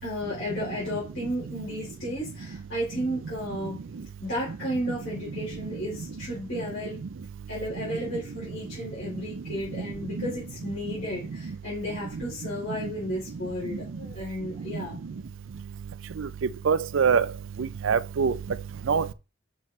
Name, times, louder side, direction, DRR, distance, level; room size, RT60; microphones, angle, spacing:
voice 1, 0.0-3.8 4.2-7.0 7.5-15.0, equal, 65° left, 3.5 m, -33 dB
voice 2, 16.7-17.3 17.6-18.3 18.9-19.1, right 6 dB, 75° right, 0.5 m, -23 dB
7.5 x 5.7 x 3.2 m
head